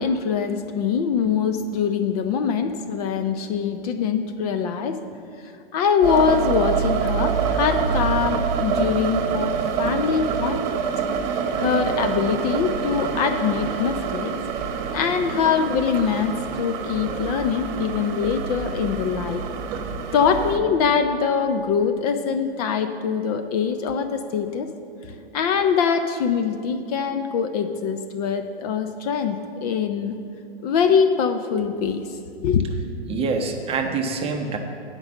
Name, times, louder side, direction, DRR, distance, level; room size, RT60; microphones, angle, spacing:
voice 1, 0.0-5.0 5.4-10.8 11.5-14.3 14.9-19.4 20.1-24.7 25.3-30.2 30.6-32.0 32.4-32.7, left 6 dB, 40° left, 8 dB, 0.5 m, -23 dB
sound 1, 6.0-20.6, right 6 dB, 45° right, 1.0 m, -26 dB
voice 2, 33.1-34.6, right 4 dB, 20° right, 4 dB, 0.7 m, -26 dB
9.7 x 5.2 x 7.2 m, 2.4 s
hypercardioid pair, 130°, 32 cm